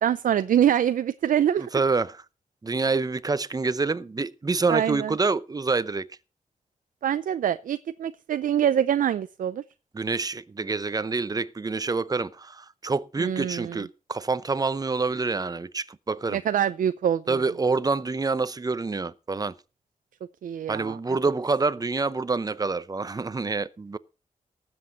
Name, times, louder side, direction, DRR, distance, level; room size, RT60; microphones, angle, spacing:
voice 1, 0.0-1.7 4.7-5.1 7.0-9.6 13.2-13.8 16.3-17.4 20.4-21.2, right 9 dB, 90° right, 0.5 m, -25 dB
voice 2, 1.6-2.2 2.6-6.1 9.9-16.4 17.3-19.5 20.7-24.0, right 4 dB, 30° right, 0.7 m, -27 dB
19.0 x 7.8 x 4.0 m
cardioid pair, 80°, 14 cm